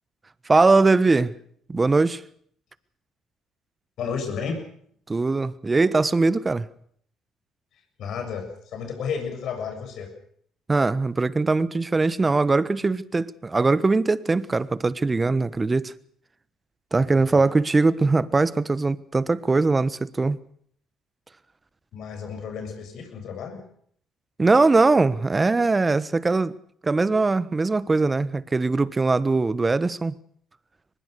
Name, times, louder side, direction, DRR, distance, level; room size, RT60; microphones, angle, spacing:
voice 1, 0.5-1.3 1.7-2.2 5.1-6.6 10.7-15.9 16.9-20.4 24.4-26.5 26.8-30.1, right 3 dB, 25° right, 1.3 m, -21 dB
voice 2, 4.0-4.6 8.0-10.1 17.1-17.4 21.9-23.6, left 6 dB, 65° left, 7.3 m, -32 dB
23.5 x 21.0 x 6.8 m
supercardioid pair, 65°, 0 cm